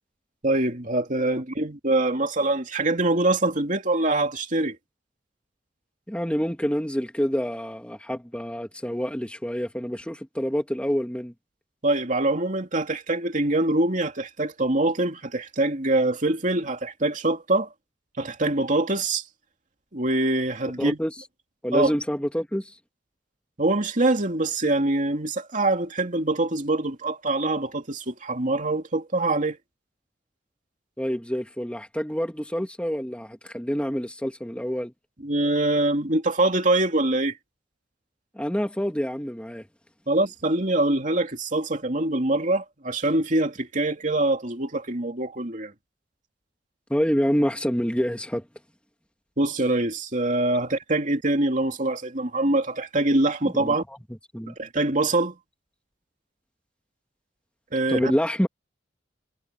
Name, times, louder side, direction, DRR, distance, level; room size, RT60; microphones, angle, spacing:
voice 1, 0.4-4.8 11.8-17.7 18.2-19.2 19.9-21.0 21.7-21.9 23.6-29.6 35.2-37.4 40.1-45.7 49.4-53.8 54.5-55.3 57.7-58.1, right 2 dB, 45° right, 2.9 m, -24 dB
voice 2, 6.1-11.3 20.8-21.1 21.6-22.7 31.0-34.9 38.4-39.7 46.9-48.4 53.6-53.8 54.3-54.6 57.9-58.5, equal, 5° left, 2.7 m, -27 dB
head